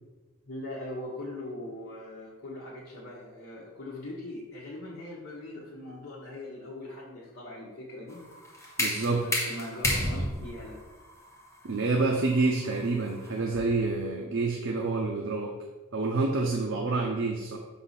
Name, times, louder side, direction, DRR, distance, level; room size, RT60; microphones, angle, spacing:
voice 1, 0.4-8.2 9.2-10.8, left 1 dB, 50° left, -6 dB, 1.4 m, -41 dB
sound 1, 8.1-13.9, left 1 dB, 15° left, 1.2 m, -33 dB
voice 2, 8.8-9.2 11.6-15.5 15.9-17.6, right 3 dB, 65° right, 1 dB, 0.7 m, -28 dB
5.9 x 4.0 x 5.7 m, 1.2 s
head